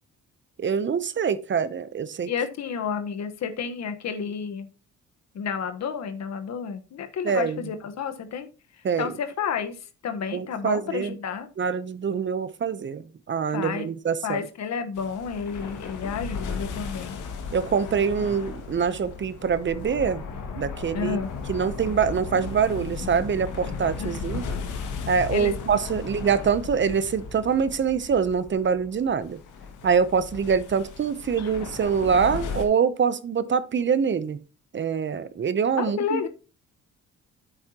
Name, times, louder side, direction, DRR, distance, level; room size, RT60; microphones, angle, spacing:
voice 1, 0.6-2.3 7.2-7.6 8.8-9.1 10.3-11.1 11.6-14.4 17.5-20.2 20.5-21.2 21.5-24.4 25.0-29.4 29.8-34.4 34.7-36.3, right 6 dB, 40° right, 0.7 m, -25 dB
voice 2, 2.3-4.7 5.3-8.5 9.0-9.7 10.0-11.5 13.5-13.9 14.2-17.2 20.9-21.3 24.0-24.2 25.3-25.8 31.4-31.5 35.8-36.3, left 6 dB, 60° left, 1.3 m, -31 dB
sound 1, 14.9-32.6, left 5 dB, 85° left, 2.1 m, -36 dB
9.7 x 8.0 x 2.9 m
cardioid pair, 90°, 30 cm